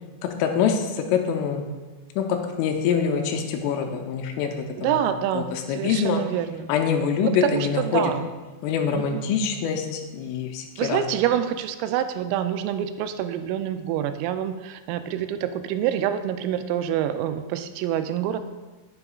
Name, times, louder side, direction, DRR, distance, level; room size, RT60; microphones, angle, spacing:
voice 1, 0.2-1.6 2.2-5.0 5.3-6.2 6.7-8.0 8.6-11.0, left 7 dB, 85° left, 4 dB, 3.2 m, -25 dB
voice 2, 4.8-6.7 7.2-8.3 8.9-9.3 10.8-18.4, right 10 dB, 90° right, 9 dB, 3.2 m, -26 dB
9.7 x 7.6 x 2.4 m, 1.2 s
omnidirectional pair, 5.8 m